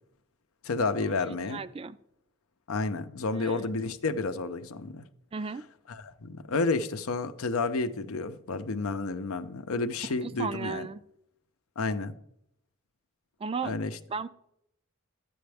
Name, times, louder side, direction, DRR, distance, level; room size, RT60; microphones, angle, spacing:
voice 1, 0.6-1.6 2.7-5.0 5.9-10.9 11.8-12.2 13.6-14.0, left 3 dB, 75° left, 0.7 m, -31 dB
voice 2, 1.5-2.0 3.3-3.6 5.3-5.6 10.2-11.0 13.4-13.7 14.1-14.3, right 5 dB, 25° right, 0.3 m, -34 dB
11.5 x 8.6 x 3.4 m
head